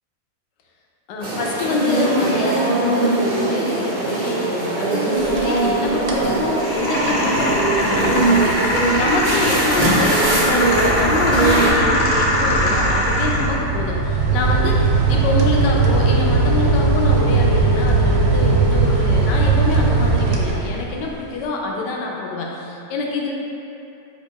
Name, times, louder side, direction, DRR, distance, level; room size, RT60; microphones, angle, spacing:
voice 1, 1.1-23.3, left 3 dB, 75° left, -1 dB, 1.2 m, -25 dB
sound 1, 1.2-11.7, right 2 dB, 55° right, 0.5 m, -21 dB
sound 2, 5.2-5.7 6.0-6.4 6.8-21.1, right 3 dB, 70° right, 1.1 m, -20 dB
sound 3, 6.6-13.6, left 1 dB, 60° left, 0.9 m, -21 dB
4.5 x 2.3 x 4.3 m, 2.8 s
omnidirectional pair, 1.9 m